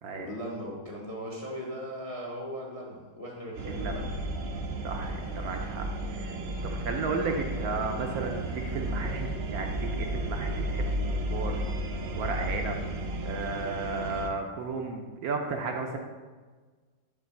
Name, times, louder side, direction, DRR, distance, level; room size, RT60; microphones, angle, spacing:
voice 1, 0.1-4.1, equal, 30° left, -2 dB, 0.6 m, -38 dB
sound 1, 3.5-14.3, right 1 dB, 85° right, 0.5 m, -33 dB
voice 2, 3.7-4.0 4.8-6.4 6.6-11.6 12.2-12.8 13.2-16.0, right 4 dB, 70° right, 3 dB, 1.0 m, -34 dB
7.3 x 3.4 x 5.7 m, 1.4 s
omnidirectional pair, 1.9 m